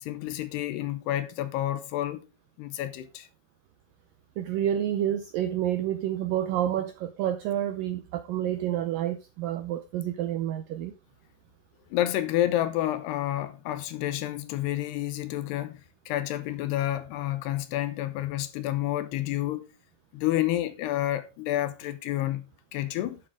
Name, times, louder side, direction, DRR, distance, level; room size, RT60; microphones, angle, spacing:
voice 1, 0.0-2.2 2.6-3.3 11.9-15.8 16.1-19.7 20.1-23.2, left 13 dB, 80° left, 2.9 m, -29 dB
voice 2, 4.4-10.9, right 11 dB, 85° right, 1.9 m, -29 dB
12.0 x 7.1 x 3.7 m
omnidirectional pair, 4.9 m